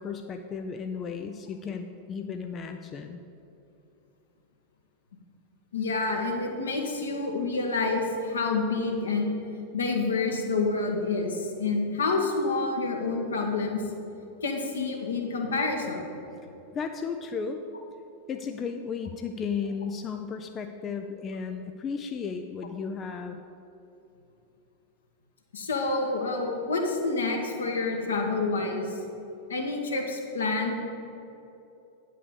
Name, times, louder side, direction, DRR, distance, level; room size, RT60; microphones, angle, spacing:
voice 1, 0.0-3.2 16.7-17.6 18.3-23.4, left 5 dB, 25° left, 6 dB, 0.5 m, -34 dB
voice 2, 5.7-9.3 9.7-13.8 14.4-16.0 25.5-28.9 29.5-30.8, left 3 dB, 70° left, 1 dB, 1.4 m, -28 dB
9.3 x 5.6 x 7.1 m, 2.8 s
figure-of-eight pair, 90°, 0 cm